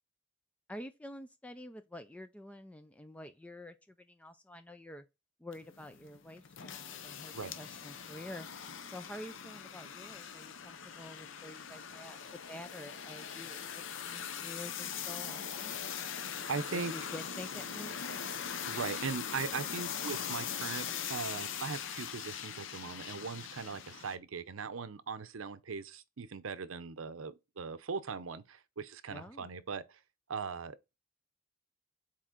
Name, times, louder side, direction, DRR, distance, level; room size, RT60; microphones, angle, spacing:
voice 1, 0.7-5.0 5.4-8.5 8.8-12.2 12.5-15.8 16.7-18.0 29.1-29.5, left 1 dB, 5° left, 0.4 m, -48 dB
sound 1, 5.5-24.2, left 8 dB, 70° left, 0.7 m, -41 dB
voice 2, 16.5-17.1 18.7-30.0 30.3-31.0, right 5 dB, 85° right, 0.6 m, -40 dB
7.5 x 4.3 x 3.8 m
head